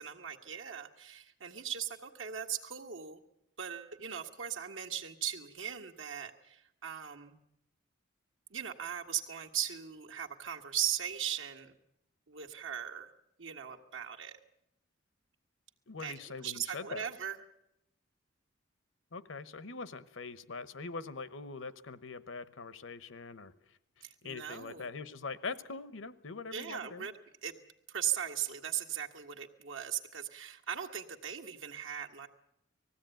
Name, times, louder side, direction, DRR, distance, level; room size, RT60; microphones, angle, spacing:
voice 1, 0.0-3.2 3.6-7.4 8.5-11.8 12.3-13.1 13.4-14.4 16.0-17.4 24.0-24.9 26.5-27.6 27.9-32.3, right 9 dB, 85° right, 2 dB, 1.7 m, -38 dB
voice 2, 15.9-17.1 19.1-23.5 24.0-27.1, left 4 dB, 90° left, 14 dB, 1.0 m, -43 dB
20.0 x 15.5 x 9.1 m, 0.83 s
head